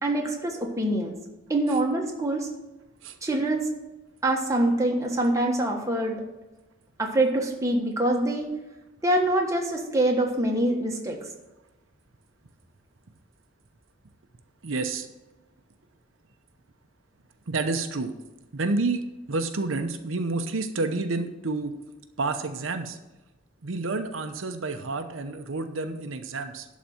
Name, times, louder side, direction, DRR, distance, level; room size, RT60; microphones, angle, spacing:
voice 1, 0.0-1.2 1.5-2.5 3.2-3.7 4.2-6.2 7.0-8.5 9.0-11.2, right 1 dB, 15° right, 0 dB, 1.4 m, -25 dB
voice 2, 14.6-15.1 17.5-18.1 18.5-21.7 22.2-23.0 23.6-26.7, right 3 dB, 90° right, 7 dB, 0.8 m, -29 dB
11.5 x 4.2 x 7.7 m, 1.0 s
head